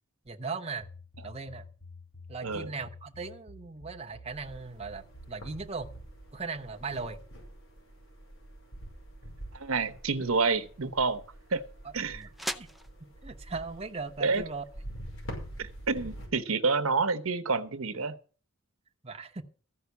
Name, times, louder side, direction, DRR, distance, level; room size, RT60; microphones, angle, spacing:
voice 1, 0.2-0.9 1.2-1.7 2.3-5.9 6.3-7.2 12.0-12.3 12.5-12.7 13.2-14.6 19.0-19.4, right 4 dB, 30° right, 0.9 m, -38 dB
sound 1, 0.8-6.1, left 1 dB, 65° left, 4.5 m, -50 dB
sound 2, 4.3-16.3, equal, 80° left, 5.8 m, -46 dB
voice 2, 9.5-11.2 11.5-11.6 11.9-12.3 14.2-14.4 15.6-18.2, right 4 dB, 80° right, 1.0 m, -28 dB
sound 3, 9.7-15.6, equal, ahead, 0.5 m, -45 dB
14.5 x 5.7 x 8.2 m
head